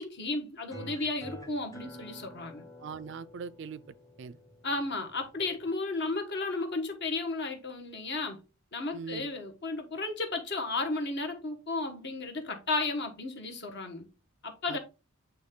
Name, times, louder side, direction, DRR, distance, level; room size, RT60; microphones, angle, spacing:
voice 1, 0.0-2.6 4.6-8.4 8.7-14.1 14.4-14.8, left 3 dB, 50° left, 1.4 m, -34 dB
sound 1, 0.7-5.7, equal, 15° left, 1.1 m, -48 dB
voice 2, 2.8-3.8 4.2-4.4 8.9-9.3 14.7-14.8, right 5 dB, 55° right, 0.4 m, -40 dB
8.6 x 3.3 x 3.7 m
head